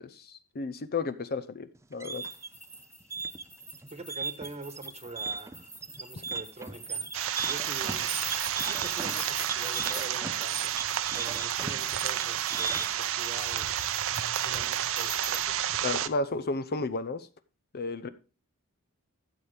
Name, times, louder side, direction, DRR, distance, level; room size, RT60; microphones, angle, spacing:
voice 1, 0.0-2.2 15.8-17.3 17.7-18.1, left 3 dB, 45° left, 13 dB, 0.6 m, -33 dB
sound 1, 1.8-13.1, right 4 dB, 15° right, 0.4 m, -37 dB
sound 2, 2.1-15.4, equal, 5° left, 2.3 m, -44 dB
voice 2, 3.9-7.1 7.4-8.2 8.5-10.7 11.1-13.8 14.4-15.4, right 2 dB, 30° right, 9 dB, 1.2 m, -44 dB
sound 3, 7.1-16.1, right 11 dB, 65° right, 0.6 m, -31 dB
13.5 x 7.3 x 3.4 m, 0.33 s
head